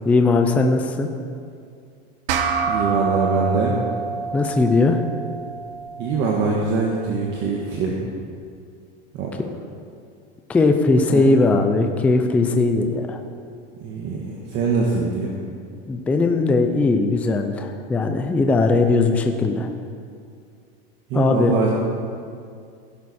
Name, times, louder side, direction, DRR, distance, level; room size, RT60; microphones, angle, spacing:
voice 1, 0.1-1.1 4.3-5.0 10.5-13.2 15.9-19.7 21.1-21.5, left 3 dB, 5° left, 5 dB, 0.4 m, -19 dB
sound 1, 2.3-7.1, right 5 dB, 70° right, 1.2 m, -28 dB
voice 2, 2.7-3.7 6.0-8.0 9.1-9.3 11.1-11.3 13.8-15.3 21.1-21.7, right 4 dB, 35° right, -2 dB, 1.4 m, -23 dB
16.5 x 11.0 x 4.2 m, 2.3 s
supercardioid pair, 165°, 29 cm